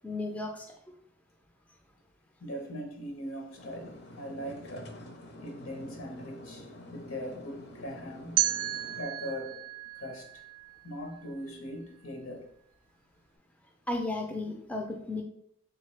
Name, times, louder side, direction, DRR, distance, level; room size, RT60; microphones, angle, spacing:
voice 1, 0.0-0.7 13.9-15.2, left 2 dB, 5° left, 3 dB, 0.3 m, -34 dB
voice 2, 2.4-4.9 5.4-8.4 8.9-9.6 10.0-10.4 10.8-12.5, equal, 80° left, 4 dB, 0.8 m, -40 dB
sound 1, 3.6-9.0, left 1 dB, 50° left, 0.5 m, -48 dB
sound 2, 8.4-11.3, right 12 dB, 85° right, 0.4 m, -33 dB
3.7 x 3.3 x 3.1 m, 0.68 s
head